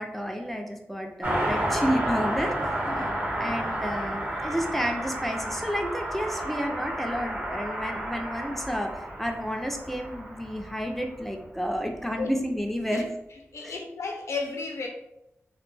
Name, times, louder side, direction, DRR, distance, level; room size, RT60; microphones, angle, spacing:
voice 1, 0.0-2.7 3.4-13.1 13.6-13.8, equal, 5° left, 3 dB, 0.3 m, -31 dB
Car passing by, 1.2-11.2 11.4-11.5, right 1 dB, 35° right, 0.9 m, -31 dB
voice 2, 2.8-3.2 12.2-12.3 12.9-13.0 13.5-14.9, left 4 dB, 85° left, 1 dB, 0.5 m, -33 dB
2.2 x 2.1 x 3.1 m, 0.87 s
wide cardioid pair, 75°, 5 cm